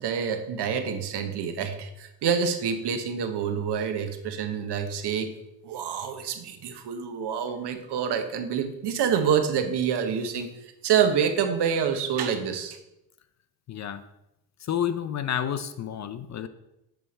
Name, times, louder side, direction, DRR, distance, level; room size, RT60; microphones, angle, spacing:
voice 1, 0.0-5.3 5.6-10.5 10.8-12.8, right 7 dB, 70° right, 7 dB, 0.9 m, -27 dB
voice 2, 13.7-14.0 14.6-16.5, left 9 dB, 40° left, 11 dB, 0.4 m, -30 dB
7.7 x 3.4 x 4.1 m, 0.89 s
cardioid pair, 85°, 43 cm